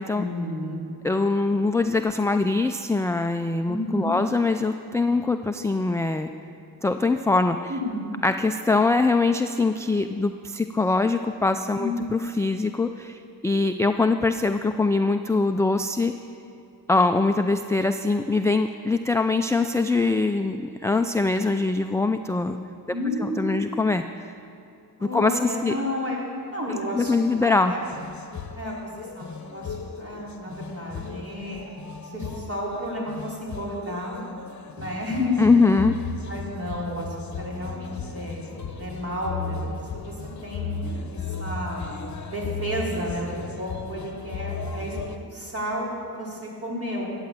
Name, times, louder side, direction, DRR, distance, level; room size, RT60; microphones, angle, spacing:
voice 1, 0.1-0.9 3.7-4.2 7.7-8.1 11.8-11.9 22.9-23.7 25.0-26.2 26.5-27.8 28.5-31.6 32.1-34.2 34.7-35.8 36.3-39.8 40.1-40.2 40.4-41.9 42.3-47.1, left 1 dB, 35° right, -4 dB, 4.0 m, -31 dB
voice 2, 1.0-6.3 6.8-7.7 8.2-16.1 16.9-22.6 23.2-24.3 25.1-25.7 26.9-27.7 35.4-35.9, left 3 dB, 10° left, 7 dB, 0.4 m, -23 dB
sound 1, 27.4-45.2, left 5 dB, 45° left, 1.0 m, -36 dB
14.0 x 8.9 x 7.5 m, 2.5 s
cardioid pair, 80°, 39 cm